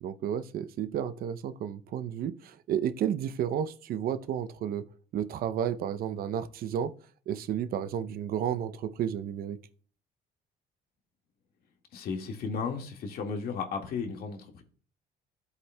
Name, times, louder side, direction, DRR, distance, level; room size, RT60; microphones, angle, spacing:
voice 1, 0.0-4.8 5.1-6.9 7.3-9.6, right 9 dB, 60° right, 0.6 m, -32 dB
voice 2, 11.9-14.6, left 5 dB, 65° left, 1.8 m, -34 dB
14.0 x 8.1 x 2.2 m
cardioid pair, 110°, 17 cm